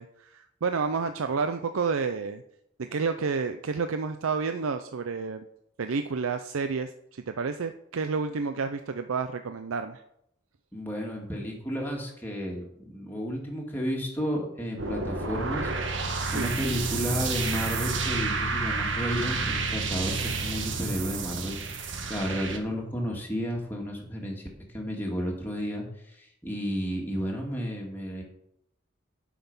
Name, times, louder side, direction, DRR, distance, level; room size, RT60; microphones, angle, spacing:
voice 1, 0.0-2.4 2.8-5.5 5.8-10.0 16.3-16.5, right 5 dB, 90° right, 8 dB, 0.5 m, -30 dB
voice 2, 10.7-24.5 24.7-28.2, equal, 10° left, -1 dB, 2.1 m, -32 dB
sound 1, 14.8-22.6, right 4 dB, 65° right, 1.3 m, -30 dB
11.5 x 5.9 x 5.5 m, 0.76 s
head